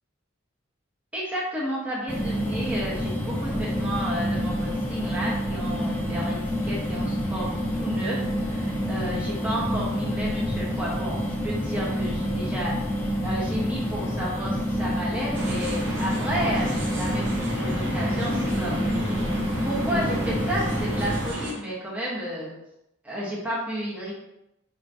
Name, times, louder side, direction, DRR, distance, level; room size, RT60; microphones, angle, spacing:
voice 1, 1.1-6.4 6.6-8.2 8.4-12.8 13.2-18.8 19.6-22.5 23.0-24.1, equal, 5° right, -6 dB, 0.9 m, -31 dB
sound 1, 2.1-21.3, equal, 10° left, 0.5 m, -28 dB
sound 2, 15.3-21.5, right 1 dB, 65° right, 0.8 m, -32 dB
4.2 x 3.0 x 2.6 m, 0.84 s
head